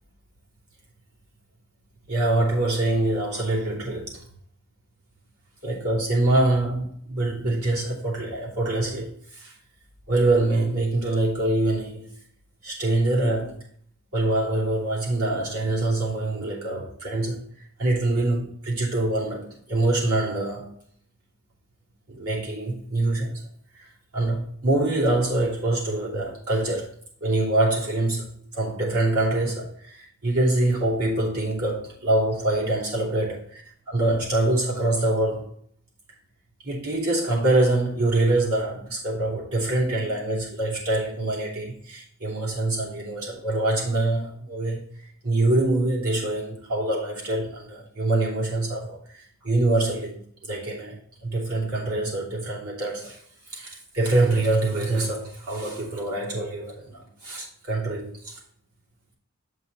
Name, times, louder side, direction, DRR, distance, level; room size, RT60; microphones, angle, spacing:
voice 1, 2.1-4.2 5.6-9.5 10.1-12.1 12.6-13.6 14.1-17.4 17.8-20.7 22.1-23.4 23.7-23.9 24.1-33.3 33.9-35.5 36.6-53.2 53.5-58.4, right 2 dB, 85° right, 3.0 m, -25 dB
8.1 x 5.5 x 4.1 m
head